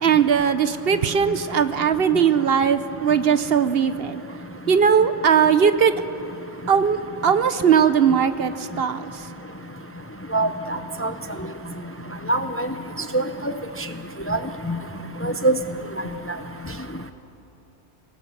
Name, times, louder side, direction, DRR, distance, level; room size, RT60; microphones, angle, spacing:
voice 1, 0.0-4.2 4.7-5.9 6.7-9.3, right 7 dB, 60° right, 12 dB, 0.9 m, -19 dB
voice 2, 10.3-11.1 12.3-12.7 13.1-13.2 14.3-14.4 14.7-14.8 15.2-15.6, right 2 dB, 15° left, 8 dB, 0.6 m, -22 dB
24.5 x 19.0 x 7.2 m, 2.8 s
omnidirectional pair, 1.2 m